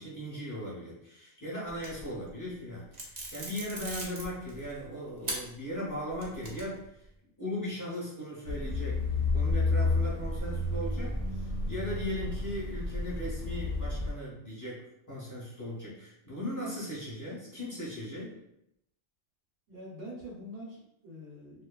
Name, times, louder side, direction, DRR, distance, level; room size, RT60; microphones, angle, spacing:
voice 1, 0.0-6.8 7.4-18.3, equal, 20° left, -7 dB, 0.7 m, -38 dB
sound 1, 1.7-2.3 2.9-4.8 5.2-5.4 5.9-6.9, right 2 dB, 45° right, 0.6 m, -39 dB
sound 2, 8.4-14.1, left 3 dB, 60° left, 0.8 m, -31 dB
voice 2, 19.7-21.7, equal, 70° right, -5 dB, 1.0 m, -45 dB
2.7 x 2.3 x 2.2 m, 0.80 s
omnidirectional pair, 1.2 m